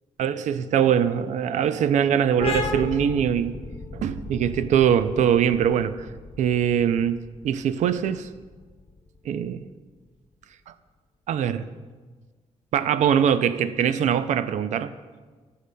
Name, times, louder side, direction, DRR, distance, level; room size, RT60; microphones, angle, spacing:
voice 1, 0.2-3.5 3.9-6.1 6.4-7.2 7.4-8.3 9.3-9.7 11.3-11.7 12.7-14.9, right 8 dB, 75° right, 12 dB, 0.4 m, -22 dB
sound 1, 2.4-9.7, left 3 dB, 50° left, 1.2 m, -35 dB
15.0 x 6.5 x 2.2 m, 1.4 s
cardioid pair, 115°, 12 cm